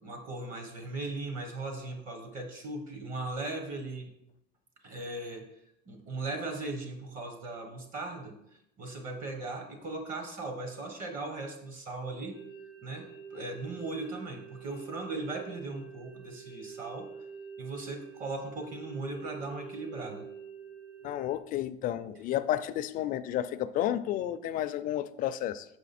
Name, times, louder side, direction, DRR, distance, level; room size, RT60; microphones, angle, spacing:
voice 1, 0.0-4.1 4.8-5.4 5.9-8.4 8.8-12.4 12.8-17.1 17.6-20.3, right 2 dB, 45° right, 4 dB, 1.3 m, -38 dB
sound 1, 12.3-21.4, right 6 dB, 80° right, 2.1 m, -46 dB
voice 2, 21.0-25.7, left 12 dB, 45° left, 12 dB, 0.4 m, -31 dB
6.6 x 5.0 x 4.2 m, 0.78 s
cardioid pair, 155°, 19 cm